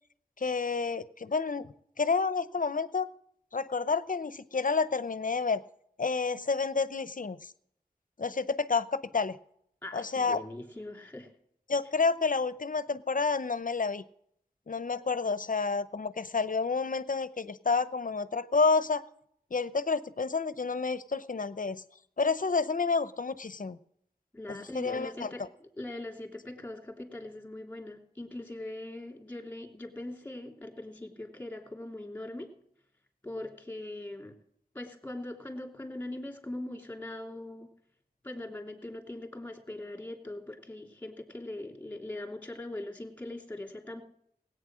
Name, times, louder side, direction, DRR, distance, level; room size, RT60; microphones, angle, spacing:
voice 1, 0.4-3.1 3.5-5.6 6.0-7.5 8.2-9.4 9.9-10.4 11.7-14.0 14.7-19.0 19.5-21.8 22.2-23.8 24.5-25.3, left 4 dB, 60° left, 15 dB, 0.7 m, -29 dB
voice 2, 9.8-11.3 24.3-32.5 33.2-34.4 34.7-37.7 38.2-44.0, left 1 dB, 10° left, 2 dB, 3.1 m, -41 dB
17.5 x 9.0 x 6.2 m, 0.70 s
wide cardioid pair, 45°, 16 cm